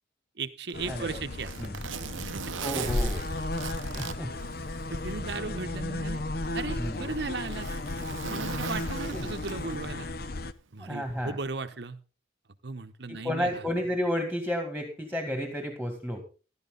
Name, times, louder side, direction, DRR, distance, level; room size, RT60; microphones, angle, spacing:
voice 1, 0.4-1.5 2.3-2.5 4.9-6.2 6.5-7.7 8.1-10.1 10.7-12.0 12.6-13.6, right 3 dB, 60° right, 9 dB, 1.0 m, -36 dB
sound 1, 0.7-10.5, left 2 dB, 50° left, 0.7 m, -34 dB
Zipper (clothing), 0.7-5.2 5.6-5.7 6.4-9.9 11.1-11.3, right 6 dB, 90° right, 0.8 m, -39 dB
voice 2, 0.9-1.2 1.6-1.8 2.6-3.2 3.8-4.3 6.8-7.1 9.1-9.2 10.8-11.4 13.1-16.2, equal, 5° left, 4 dB, 2.1 m, -32 dB
15.0 x 11.5 x 3.9 m, 0.33 s
head